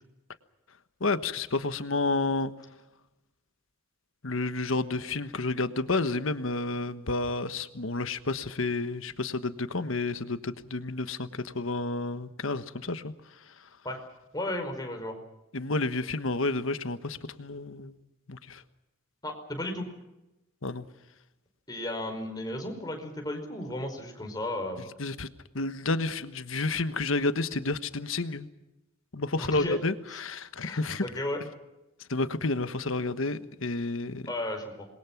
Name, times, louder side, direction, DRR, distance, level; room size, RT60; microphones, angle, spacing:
voice 1, 1.0-2.5 4.2-13.1 15.5-17.9 18.3-18.6 20.6-20.8 25.0-25.3 25.5-28.5 29.1-31.1 32.1-34.2, left 3 dB, 80° left, 11 dB, 1.3 m, -30 dB
voice 2, 14.3-15.2 19.2-19.9 21.7-24.9 29.4-29.8 30.1-30.2 30.6-31.4 34.3-34.9, left 1 dB, 20° left, 3 dB, 5.1 m, -34 dB
27.0 x 21.5 x 6.0 m, 0.96 s
head